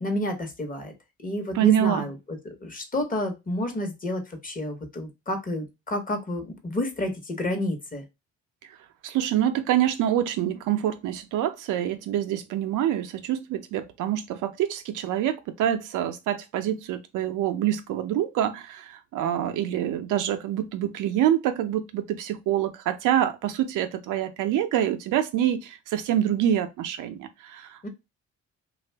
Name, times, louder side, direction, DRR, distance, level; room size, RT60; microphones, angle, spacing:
voice 1, 0.0-0.9 1.2-8.0 27.8-27.9, left 1 dB, 30° left, 0.9 m, -30 dB
voice 2, 1.5-2.1 9.0-27.9, right 11 dB, 85° right, 0.5 m, -26 dB
2.6 x 2.3 x 3.3 m
cardioid pair, 90°, 30 cm